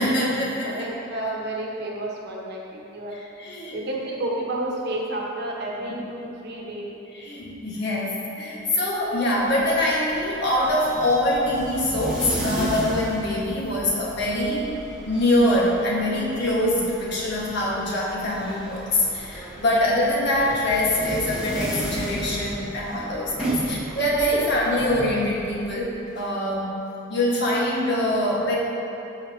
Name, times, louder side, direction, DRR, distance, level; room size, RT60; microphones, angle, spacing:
voice 1, 0.0-0.7 3.4-3.9 7.1-14.7 15.1-26.7 27.1-28.6, left 1 dB, 55° left, -5 dB, 1.6 m, -24 dB
voice 2, 0.6-3.2 3.7-7.0 23.6-23.7, right 1 dB, 55° right, -3 dB, 1.3 m, -31 dB
sound 1, 9.2-26.2, right 1 dB, 5° right, 1.2 m, -34 dB
14.0 x 5.5 x 2.9 m, 2.8 s
head